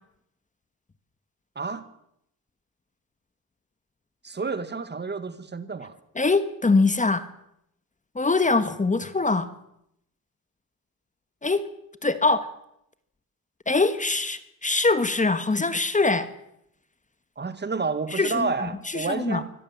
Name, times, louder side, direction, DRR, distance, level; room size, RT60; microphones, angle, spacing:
voice 1, 1.6-1.9 4.2-6.0 17.4-19.5, right 4 dB, 30° right, 13 dB, 1.7 m, -30 dB
voice 2, 6.1-7.3 8.1-9.5 11.4-11.7 12.0-12.5 13.7-16.3 18.1-19.4, left 3 dB, 20° left, 12 dB, 1.4 m, -23 dB
24.0 x 17.0 x 7.4 m, 0.77 s
cardioid pair, 115°, 36 cm